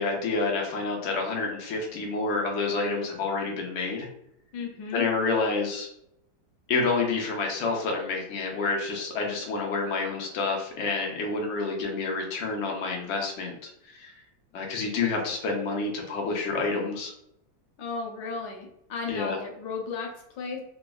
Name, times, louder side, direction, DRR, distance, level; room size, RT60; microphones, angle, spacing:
voice 1, 0.0-4.1 4.9-5.9 6.7-14.1 14.5-17.1 19.1-19.4, left 3 dB, 90° left, 0 dB, 0.6 m, -28 dB
voice 2, 4.5-5.0 17.8-20.6, left 4 dB, 75° left, 1 dB, 1.2 m, -35 dB
3.5 x 2.0 x 2.2 m, 0.75 s
omnidirectional pair, 2.1 m